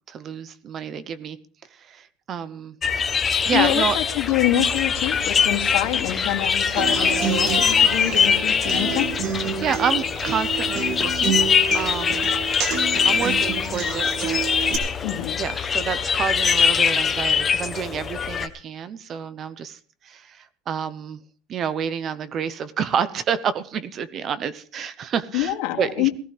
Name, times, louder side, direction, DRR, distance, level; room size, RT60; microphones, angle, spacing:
voice 1, 0.1-1.4 1.7-2.8 3.4-4.0 9.3-11.5 11.7-12.3 13.0-14.4 15.4-21.2 21.5-26.1, right 7 dB, 30° right, 15 dB, 0.7 m, -29 dB
sound 1, 2.8-18.5, left 6 dB, 20° left, 0.9 m, -22 dB
voice 2, 3.5-9.1 15.0-15.4 25.3-26.1, left 13 dB, 70° left, 2 dB, 2.5 m, -25 dB
Human voice / Acoustic guitar, 6.8-14.8, right 6 dB, 50° right, 2.0 m, -29 dB
18.5 x 14.5 x 3.4 m, 0.43 s
cardioid pair, 170°, 0 cm